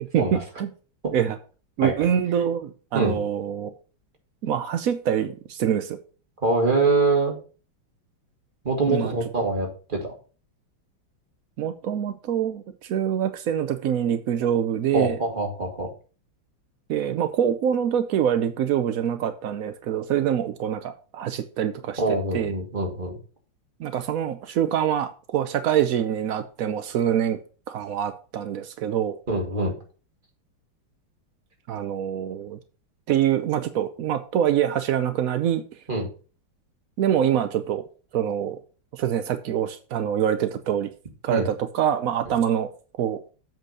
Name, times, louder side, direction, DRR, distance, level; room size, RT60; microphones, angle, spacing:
voice 1, 0.1-0.7 1.1-1.4 1.8-3.7 4.4-6.0 8.9-9.1 11.6-15.2 16.9-22.0 22.3-22.5 23.8-27.4 27.7-29.1 31.7-32.6 33.1-35.6 37.0-37.8 38.1-38.6 38.9-40.9 41.2-42.7 43.0-43.2, right 9 dB, 75° right, 9 dB, 0.8 m, -25 dB
voice 2, 6.4-7.3 8.6-10.1 14.9-15.9 22.0-23.2 29.3-29.7 35.9-36.1 41.3-41.5, right 3 dB, 25° right, 0 dB, 2.3 m, -24 dB
7.7 x 4.5 x 6.5 m, 0.37 s
omnidirectional pair, 2.3 m